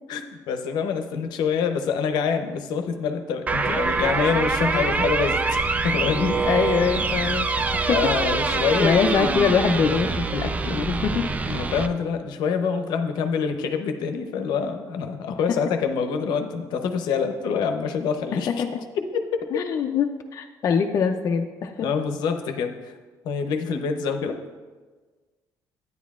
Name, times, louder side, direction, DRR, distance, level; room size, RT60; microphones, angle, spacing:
voice 1, 0.1-6.4 7.9-8.9 11.5-18.6 18.9-19.6 21.8-23.0 23.2-24.4, left 6 dB, 80° left, 7 dB, 0.7 m, -26 dB
sound 1, 3.5-11.9, right 4 dB, 20° right, 0.4 m, -25 dB
voice 2, 6.5-7.5 7.7-8.0 8.8-11.3 18.6-18.7 19.5-21.9, left 6 dB, 45° left, 4 dB, 0.4 m, -23 dB
9.4 x 9.3 x 2.4 m, 1.4 s
cardioid pair, 130°, 7 cm